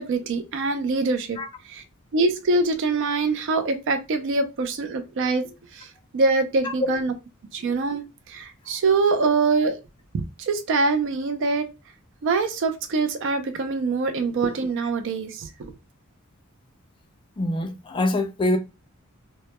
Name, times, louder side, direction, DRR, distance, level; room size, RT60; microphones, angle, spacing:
voice 1, 0.0-1.4 1.7-1.8 2.1-5.4 5.7-5.9 6.1-7.1 7.5-9.8 10.1-11.7 12.2-15.7, right 3 dB, 60° right, 0.4 m, -24 dB
voice 2, 17.4-18.6, left 1 dB, 25° left, 0.3 m, -24 dB
2.1 x 2.1 x 2.8 m
head